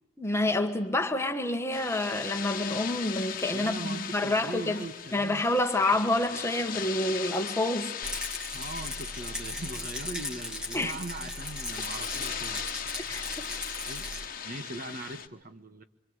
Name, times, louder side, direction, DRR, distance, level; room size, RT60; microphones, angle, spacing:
voice 1, 0.2-4.8 5.1-7.9 10.7-10.9 13.1-13.4, left 2 dB, 15° left, 1.6 m, -28 dB
sound 1, 1.7-15.3, left 8 dB, 45° left, 1.4 m, -39 dB
voice 2, 3.5-5.4 8.5-12.6 13.0-13.3 13.8-14.1 14.4-15.8, right 2 dB, 45° right, 1.6 m, -40 dB
Rattle, 8.0-14.3, left 2 dB, 5° right, 2.2 m, -37 dB
26.0 x 25.5 x 8.2 m
head